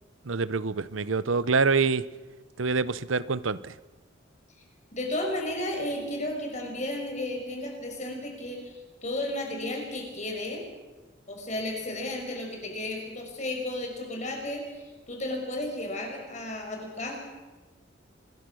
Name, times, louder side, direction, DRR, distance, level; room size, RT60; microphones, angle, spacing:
voice 1, 0.3-2.0 2.6-3.7, right 4 dB, 90° right, 16 dB, 0.8 m, -26 dB
voice 2, 4.9-8.7 9.0-10.6 11.3-17.2, left 1 dB, 35° left, 2 dB, 5.9 m, -33 dB
26.0 x 21.5 x 6.4 m, 1.2 s
head